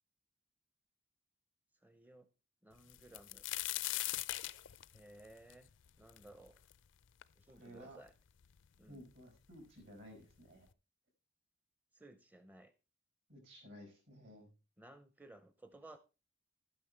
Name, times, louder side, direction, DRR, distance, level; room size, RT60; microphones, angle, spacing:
voice 1, 1.8-2.3 2.6-3.4 4.9-5.7 6.0-6.6 7.4-8.1 8.8-9.0 11.9-12.7 14.8-16.0, right 1 dB, 10° right, 10 dB, 0.5 m, -57 dB
sound 1, 2.9-6.7 7.2-7.3 8.1-8.2 8.4-9.1 10.0-10.1 10.5-10.7, left 16 dB, 70° left, 0.4 m, -40 dB
voice 2, 7.5-8.0 8.9-10.7 13.3-14.5, equal, 70° right, 3 dB, 5.2 m, -55 dB
12.0 x 9.5 x 3.2 m, 0.30 s
head